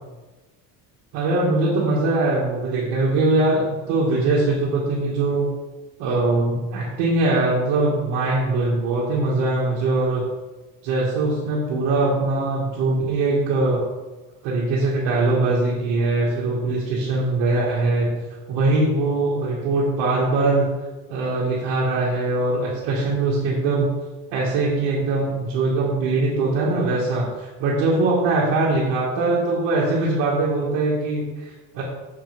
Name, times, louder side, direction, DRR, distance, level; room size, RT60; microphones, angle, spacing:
voice 1, 1.1-5.5 6.0-10.2 10.8-13.8 14.4-18.2 18.5-20.7 21.1-23.9 24.3-31.8, right 2 dB, 70° right, -5 dB, 2.0 m, -22 dB
7.6 x 6.7 x 3.6 m, 1.2 s
cardioid pair, 175°, 42 cm